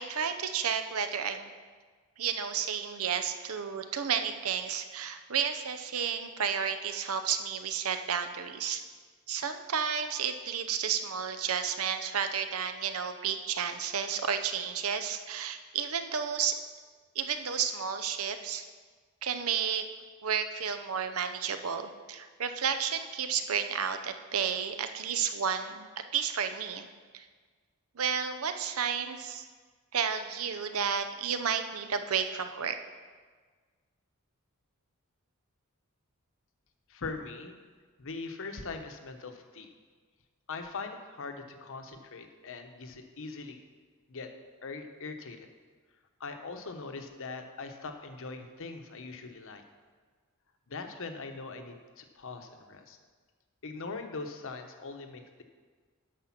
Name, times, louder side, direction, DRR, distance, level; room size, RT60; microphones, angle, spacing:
voice 1, 0.0-1.5 2.2-8.8 9.3-16.6 17.1-18.6 19.2-19.8 20.2-26.9 27.1-27.2 28.0-29.4 29.9-32.8, right 7 dB, 70° right, 8 dB, 0.7 m, -32 dB
voice 2, 36.9-37.6 38.0-39.7 40.5-43.6 44.1-44.3 44.6-45.4 46.2-49.6 50.7-53.0 53.6-55.4, left 4 dB, 65° left, 6 dB, 1.0 m, -41 dB
10.0 x 6.7 x 5.9 m, 1.5 s
head